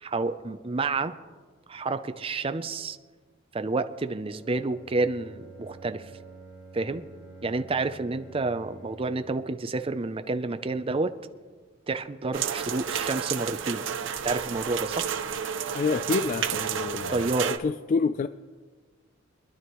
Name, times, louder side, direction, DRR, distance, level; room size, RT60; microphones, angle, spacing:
voice 1, 0.0-1.1 1.7-3.0 3.5-6.1 6.7-7.0 7.4-11.1 11.9-13.8 14.2-15.1 17.1-17.5, right 3 dB, 30° right, 0.5 m, -29 dB
Bowed string instrument, 4.3-9.4, right 3 dB, 85° left, 4.9 m, -48 dB
sound 1, 12.3-17.6, right 8 dB, 65° right, 0.7 m, -31 dB
voice 2, 15.7-17.3 17.6-18.3, left 4 dB, 40° left, 0.3 m, -27 dB
24.0 x 11.0 x 3.1 m
head